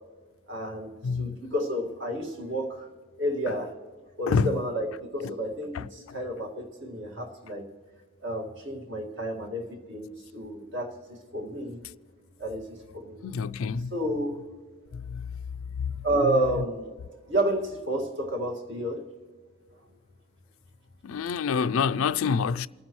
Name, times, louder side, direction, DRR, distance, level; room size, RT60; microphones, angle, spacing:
voice 1, 0.5-2.9 3.2-3.7 4.2-7.7 8.2-11.8 12.4-13.2 13.9-14.4 16.0-16.9 17.3-19.0, right 1 dB, 55° right, 1.9 m, -30 dB
voice 2, 1.0-1.4 4.3-4.5 5.2-5.3 5.7-6.2 13.2-13.9 14.9-15.3 15.8-15.9 21.0-22.7, left 5 dB, 75° left, 0.4 m, -27 dB
28.5 x 9.6 x 3.1 m
head